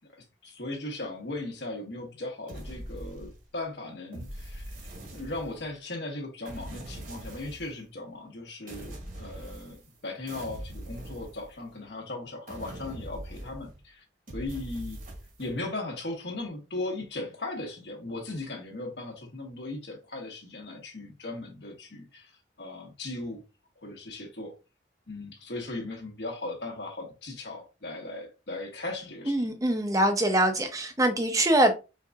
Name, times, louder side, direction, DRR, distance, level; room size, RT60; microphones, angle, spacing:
voice 1, 0.4-4.6 5.1-14.0 14.3-15.0 15.4-22.3 22.6-23.4 23.8-24.5 25.1-29.5, left 2 dB, 60° left, 1.2 m, -37 dB
sound 1, 2.5-3.6 4.1-5.7 6.4-7.8 8.7-10.0 10.3-11.9 12.5-13.8 14.3-15.5, right 1 dB, 45° right, 1.2 m, -42 dB
voice 2, 29.3-31.7, right 1 dB, 20° right, 0.7 m, -23 dB
4.5 x 3.8 x 2.3 m
head